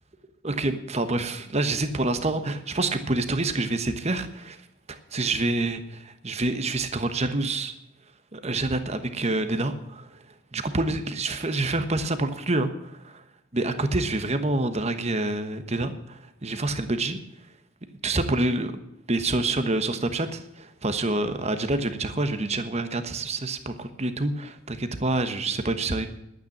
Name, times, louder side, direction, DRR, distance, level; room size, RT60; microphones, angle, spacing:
voice 1, 0.4-4.6 4.9-7.7 8.3-10.1 10.5-12.7 13.0-13.1 13.5-17.2 18.0-26.1, right 2 dB, 30° right, 9 dB, 1.1 m, -27 dB
12.0 x 9.3 x 7.2 m, 0.83 s
head